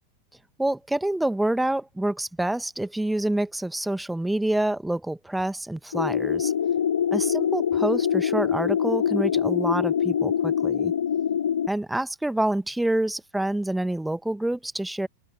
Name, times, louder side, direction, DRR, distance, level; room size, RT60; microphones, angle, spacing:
voice 1, 0.6-6.5 7.1-10.9 11.7-15.1, right 1 dB, 5° right, 1.7 m, -27 dB
sound 1, 5.9-11.7, left 8 dB, 65° left, 0.5 m, -24 dB
open air
figure-of-eight pair, 90°, 0 cm